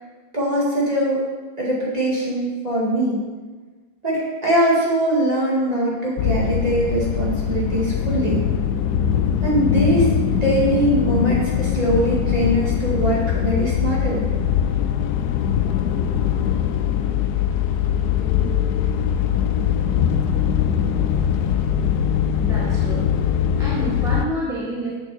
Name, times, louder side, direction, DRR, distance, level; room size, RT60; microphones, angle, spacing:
voice 1, 0.3-1.2 1.6-3.2 4.0-8.4 9.4-14.2, right 1 dB, 20° right, -6 dB, 2.3 m, -21 dB
sound 1, 6.2-24.2, left 8 dB, 75° left, 0.9 m, -21 dB
voice 2, 22.4-23.1 23.5-24.9, equal, ahead, -6 dB, 1.0 m, -28 dB
7.7 x 6.7 x 4.4 m, 1.3 s
omnidirectional pair, 2.2 m